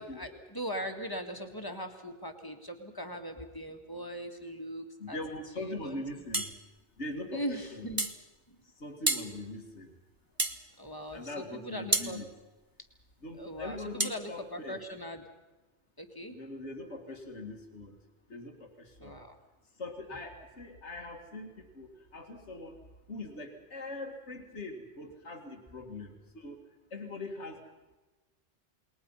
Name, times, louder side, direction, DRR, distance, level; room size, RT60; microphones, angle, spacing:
voice 1, 0.0-5.2 5.6-6.0 7.3-8.1 8.5-8.6 10.8-12.2 13.4-15.2 16.0-16.3 19.0-19.4, equal, 20° left, 5 dB, 2.2 m, -40 dB
voice 2, 5.0-6.5 7.0-7.9 8.8-9.9 11.1-12.3 13.2-14.8 16.3-18.0 18.3-19.2 19.8-22.8 23.1-26.6 26.9-27.6, left 2 dB, 90° left, 3 dB, 2.4 m, -42 dB
sound 1, 6.3-6.6 8.0-8.2 9.1-9.3 10.4-10.6 11.9-12.1 14.0-14.2, right 2 dB, 20° right, 1.2 m, -29 dB
28.5 x 21.0 x 5.7 m, 1.2 s
omnidirectional pair, 1.1 m